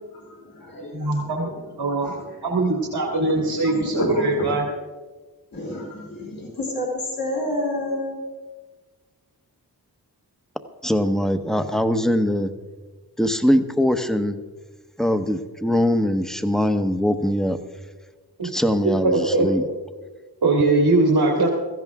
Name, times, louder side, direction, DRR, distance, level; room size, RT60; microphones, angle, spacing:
voice 1, 0.1-1.7 2.0-2.3 2.6-4.6 5.5-8.2, left 1 dB, 60° left, -2 dB, 3.4 m, -30 dB
voice 2, 0.9-1.5 1.8-2.1 2.4-4.6 18.4-18.5 18.8-19.7 20.4-21.5, right 2 dB, 85° right, -2 dB, 2.2 m, -21 dB
voice 3, 10.8-12.5 13.2-14.4 15.0-17.6 18.4-19.6, equal, ahead, 8 dB, 1.0 m, -22 dB
17.0 x 14.5 x 3.6 m, 1.3 s
wide cardioid pair, 65°, 39 cm